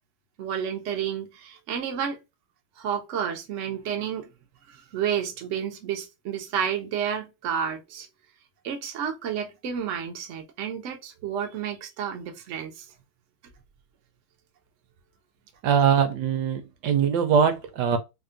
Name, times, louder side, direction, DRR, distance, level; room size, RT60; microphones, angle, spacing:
voice 1, 0.4-2.2 2.8-4.3 4.9-8.1 8.6-12.9, right 8 dB, 85° right, 0.6 m, -30 dB
voice 2, 15.6-18.0, right 7 dB, 70° right, 1.0 m, -22 dB
3.5 x 2.1 x 2.5 m
omnidirectional pair, 2.2 m